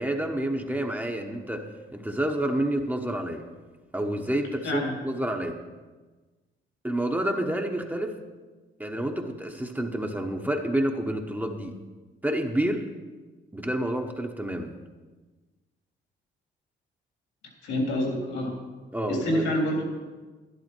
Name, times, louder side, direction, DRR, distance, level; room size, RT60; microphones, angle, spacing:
voice 1, 0.0-3.5 3.9-5.6 6.8-8.2 8.8-11.8 12.2-12.9 13.5-14.7 18.9-19.4, right 1 dB, 10° right, 3 dB, 1.0 m, -29 dB
voice 2, 17.6-18.6 19.1-19.8, equal, 80° left, 0 dB, 3.6 m, -27 dB
11.5 x 11.5 x 4.6 m, 1.3 s
cardioid pair, 90°, 20 cm